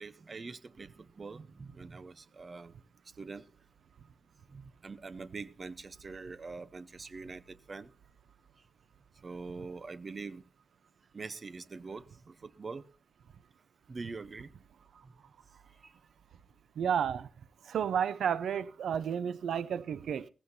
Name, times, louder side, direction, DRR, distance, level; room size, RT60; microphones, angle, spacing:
voice 1, 0.0-2.7 3.2-3.5 4.5-7.9 9.2-10.4 11.1-12.9 13.9-14.5 15.0-15.1 15.8-15.9, right 4 dB, 35° right, 0.8 m, -44 dB
voice 2, 16.8-17.3 17.6-20.3, right 8 dB, 85° right, 0.6 m, -31 dB
17.5 x 15.5 x 2.7 m
wide cardioid pair, 125°, 0 cm